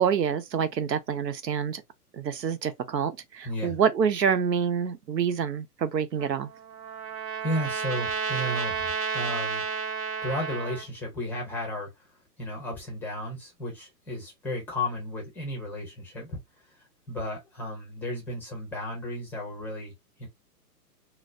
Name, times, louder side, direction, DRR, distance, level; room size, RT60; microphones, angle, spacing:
voice 1, 0.0-1.8 2.1-6.5, right 7 dB, 90° right, 0.8 m, -27 dB
voice 2, 3.4-3.8 7.4-9.7 10.2-12.1 12.4-16.4 16.8-19.9 20.2-20.3, left 1 dB, 5° left, 0.6 m, -34 dB
Trumpet, 6.2-10.9, right 5 dB, 60° right, 1.0 m, -31 dB
3.9 x 2.0 x 2.5 m
hypercardioid pair, 135°, 48 cm